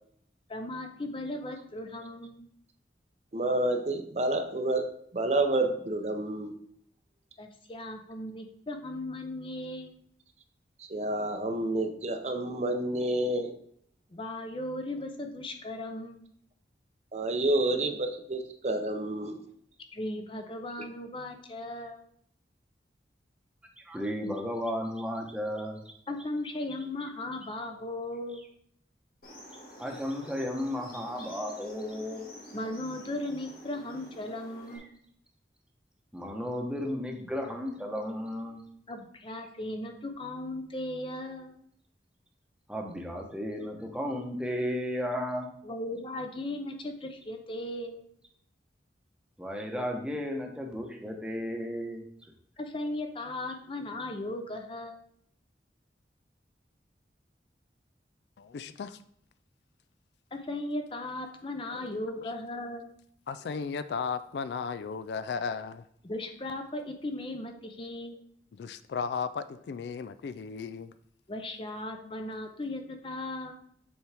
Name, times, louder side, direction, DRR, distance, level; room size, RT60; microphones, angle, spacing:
voice 1, 0.5-2.5 7.4-9.9 14.1-16.2 19.9-22.0 26.1-28.4 32.5-34.8 38.9-41.5 45.6-48.0 52.6-55.0 60.3-62.9 66.0-68.2 71.3-73.5, left 1 dB, 30° left, 0.6 m, -37 dB
voice 2, 3.3-4.9 5.1-6.5 10.9-13.5 17.1-19.4, right 2 dB, 40° right, 0.6 m, -29 dB
voice 3, 23.8-25.8 29.8-32.3 34.7-34.8 36.1-38.6 42.7-45.5 49.4-52.0, equal, 5° right, 0.9 m, -34 dB
sound 1, 29.2-34.8, equal, 50° left, 1.6 m, -48 dB
voice 4, 58.4-59.0 61.7-62.3 63.3-65.8 68.6-70.9, left 5 dB, 70° left, 0.3 m, -35 dB
7.2 x 4.6 x 3.4 m
head